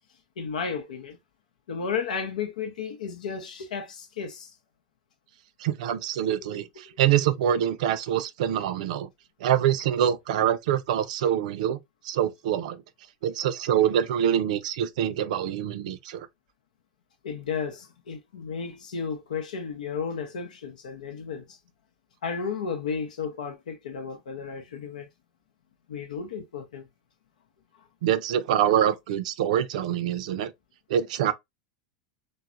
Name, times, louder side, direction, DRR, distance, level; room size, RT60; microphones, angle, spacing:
voice 1, 0.4-1.2 1.7-4.5 6.3-6.7 7.1-7.2 17.2-21.6 22.2-25.1 25.9-26.9, left 6 dB, 85° left, 0.6 m, -33 dB
voice 2, 5.6-6.6 7.0-9.1 9.4-11.8 12.0-12.8 13.2-16.3 28.0-30.5 30.9-31.3, right 10 dB, 75° right, 0.4 m, -25 dB
3.1 x 2.0 x 2.4 m
hypercardioid pair, 105°, 4 cm